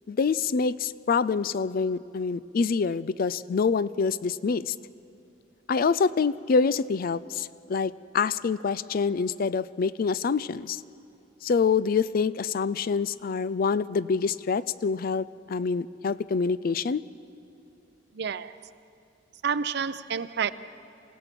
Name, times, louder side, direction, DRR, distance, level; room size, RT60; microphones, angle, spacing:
voice 1, 0.1-4.7 5.7-10.8 11.4-17.0, left 5 dB, 50° left, 18 dB, 0.4 m, -26 dB
voice 2, 18.1-18.5 19.4-20.5, right 6 dB, 60° right, 15 dB, 0.6 m, -29 dB
27.5 x 16.5 x 6.0 m, 2.8 s
head